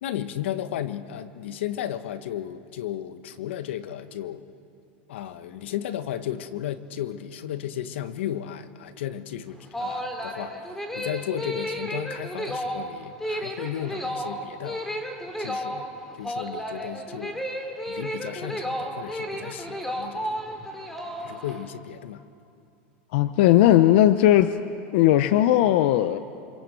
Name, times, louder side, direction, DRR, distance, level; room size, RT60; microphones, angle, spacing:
voice 1, 0.0-4.4 5.1-10.5 10.9-14.9 15.4-15.9 16.2-17.4 17.9-20.3 21.2-22.2, left 11 dB, 85° left, 11 dB, 1.4 m, -34 dB
sound 1, 9.5-21.6, equal, 5° left, 3.1 m, -32 dB
voice 2, 23.1-24.6 24.9-26.2, left 13 dB, 65° left, 11 dB, 0.9 m, -18 dB
28.0 x 27.0 x 7.8 m, 2.6 s
supercardioid pair, 145°, 6 cm